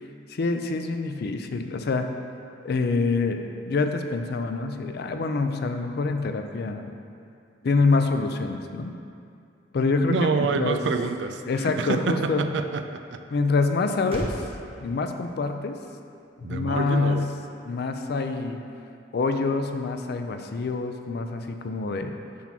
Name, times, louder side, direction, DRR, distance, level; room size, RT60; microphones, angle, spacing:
voice 1, 0.3-2.1 2.6-6.9 7.6-8.9 9.7-10.8 11.5-12.5 13.3-14.3 14.8-15.8 16.4-17.3 17.7-18.6 19.1-22.1, left 3 dB, 60° left, 6 dB, 0.4 m, -26 dB
voice 2, 10.1-13.2 16.4-17.3, right 5 dB, 70° right, 8 dB, 0.4 m, -27 dB
Motor vehicle (road), 14.0-18.6, equal, 30° right, 0.8 m, -43 dB
5.9 x 3.7 x 5.8 m, 2.5 s
head